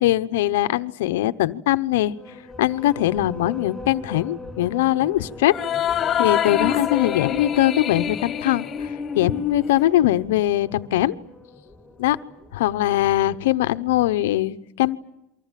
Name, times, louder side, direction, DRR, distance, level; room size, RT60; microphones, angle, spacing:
voice 1, 0.0-2.2 2.6-5.5 5.8-8.7 9.2-11.2 12.0-12.2 12.5-15.0, left 14 dB, 80° left, 12 dB, 0.9 m, -21 dB
sound 1, 2.1-14.0, left 2 dB, ahead, 6.7 m, -42 dB
sound 2, 5.5-10.2, left 8 dB, 30° left, 1.8 m, -26 dB
28.0 x 24.0 x 7.6 m, 0.87 s
supercardioid pair, 115°, 0 cm